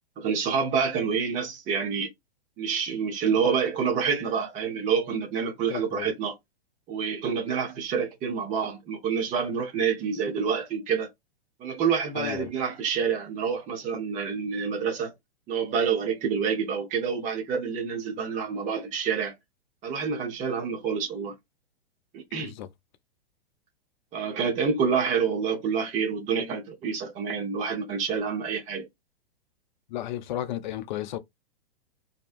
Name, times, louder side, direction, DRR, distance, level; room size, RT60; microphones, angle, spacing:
voice 1, 0.2-2.1 2.6-6.3 6.9-11.1 11.6-15.1 15.5-19.3 19.8-21.3 22.1-22.5 24.1-28.9, right 6 dB, 25° right, 0.7 m, -27 dB
voice 2, 5.7-6.1 12.1-12.5 22.4-22.7 29.9-31.2, left 12 dB, 50° left, 0.4 m, -33 dB
2.7 x 2.1 x 2.4 m
hypercardioid pair, 115°, 31 cm